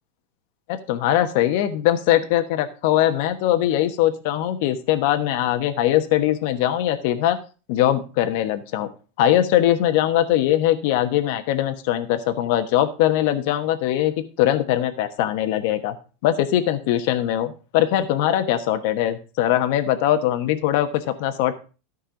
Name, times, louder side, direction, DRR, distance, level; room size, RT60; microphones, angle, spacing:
voice 1, 0.7-7.4 7.7-8.9 9.2-15.9 16.2-21.5, left 12 dB, 60° left, 8 dB, 1.1 m, -21 dB
13.5 x 5.5 x 5.2 m, 0.34 s
supercardioid pair, 150°, 0 cm